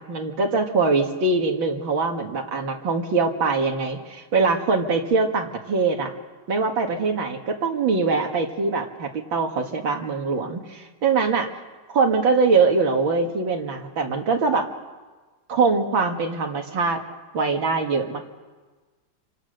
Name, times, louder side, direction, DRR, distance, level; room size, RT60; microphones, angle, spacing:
voice 1, 0.0-6.1 6.5-11.5 11.9-14.7 15.5-17.0 17.3-18.3, right 4 dB, 70° right, 3 dB, 2.7 m, -23 dB
27.5 x 25.0 x 6.6 m, 1.3 s
omnidirectional pair, 2.2 m